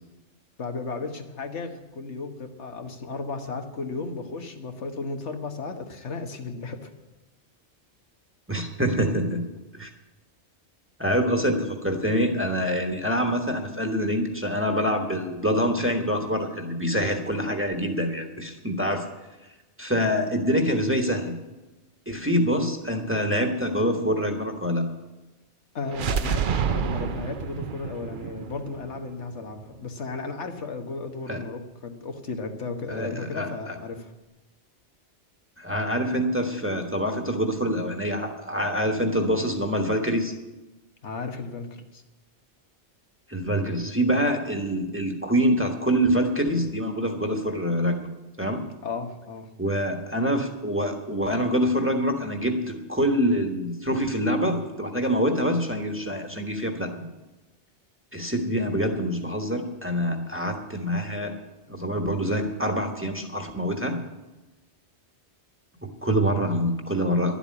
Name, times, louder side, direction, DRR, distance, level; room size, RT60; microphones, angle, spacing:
voice 1, 0.6-6.9 25.7-34.1 41.0-42.0 48.8-49.5, left 4 dB, 85° left, 5 dB, 1.6 m, -34 dB
voice 2, 8.5-9.4 9.7-9.9 11.0-19.0 19.8-21.3 22.1-24.9 31.3-31.4 32.9-33.8 35.6-40.3 43.3-48.0 48.4-48.6 49.6-57.0 58.1-61.3 61.7-64.0 65.8-67.3, equal, 10° right, 3 dB, 1.3 m, -25 dB
sound 1, 25.9-29.7, right 7 dB, 55° right, 0.7 m, -29 dB
11.5 x 8.1 x 9.6 m, 1.1 s
omnidirectional pair, 1.1 m